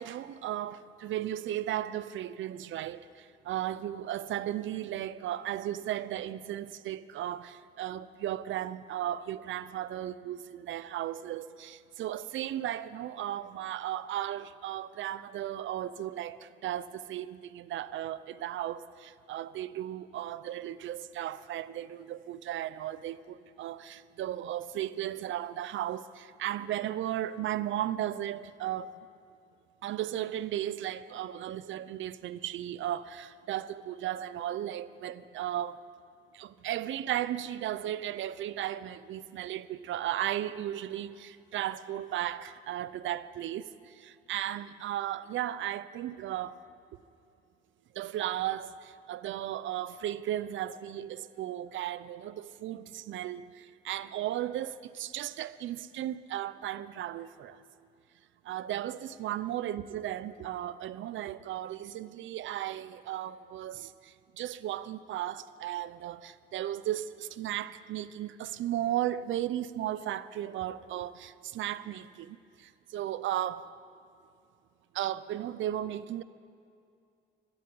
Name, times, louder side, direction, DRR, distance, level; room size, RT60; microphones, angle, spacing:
voice 1, 0.0-28.9 29.8-35.8 36.3-46.6 47.9-57.6 58.4-73.7 74.9-76.2, right 12 dB, 75° right, 0.6 m, -35 dB
12.5 x 12.0 x 9.8 m
cardioid pair, 90°, 20 cm